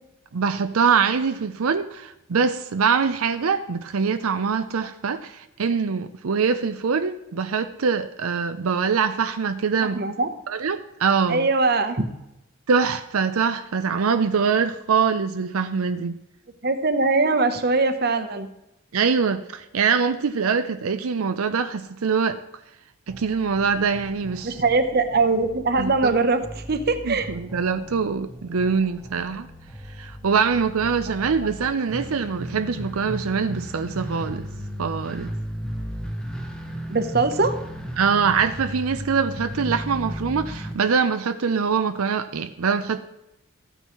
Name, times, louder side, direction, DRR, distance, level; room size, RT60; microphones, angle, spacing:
voice 1, 0.3-10.0 10.5-11.5 12.7-16.2 18.9-22.4 23.1-24.6 25.8-26.2 27.0-29.5 29.9-34.4 34.8-35.3 38.0-43.0, right 5 dB, 80° right, 9 dB, 0.6 m, -23 dB
voice 2, 9.9-10.3 11.3-12.0 16.6-18.5 24.4-26.4 26.7-27.3 36.9-37.5, right 3 dB, 45° right, 9 dB, 0.8 m, -21 dB
sound 1, 23.1-40.7, equal, 5° left, 1.0 m, -36 dB
14.0 x 9.0 x 3.1 m, 0.90 s
head